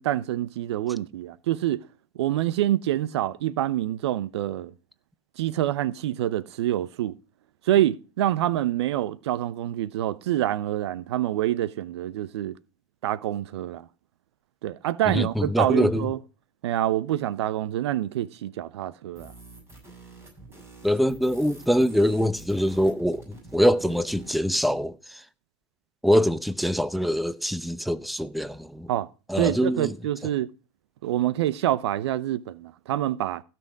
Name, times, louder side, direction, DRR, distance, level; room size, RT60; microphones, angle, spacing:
voice 1, 0.0-1.8 2.2-4.7 5.4-7.1 7.7-12.6 13.0-13.9 14.6-16.2 16.6-19.3 28.9-29.1 29.4-30.5 31.0-33.4, right 13 dB, 75° right, 0.7 m, -26 dB
voice 2, 15.1-16.1 20.8-25.2 26.0-28.9 29.3-30.0, equal, ahead, 0.8 m, -24 dB
sound 1, 19.1-24.4, right 3 dB, 20° right, 7.7 m, -47 dB
16.5 x 6.1 x 4.6 m
hypercardioid pair, 85°, 14 cm